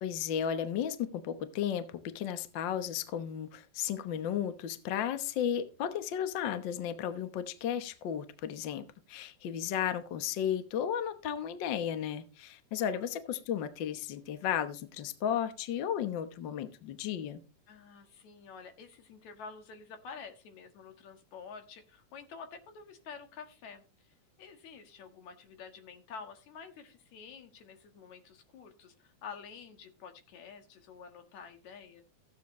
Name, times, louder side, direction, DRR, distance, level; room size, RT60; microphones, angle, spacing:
voice 1, 0.0-17.4, left 9 dB, 85° left, 1.0 m, -34 dB
voice 2, 17.7-32.0, left 5 dB, 65° left, 2.8 m, -49 dB
15.0 x 9.1 x 3.1 m
omnidirectional pair, 3.7 m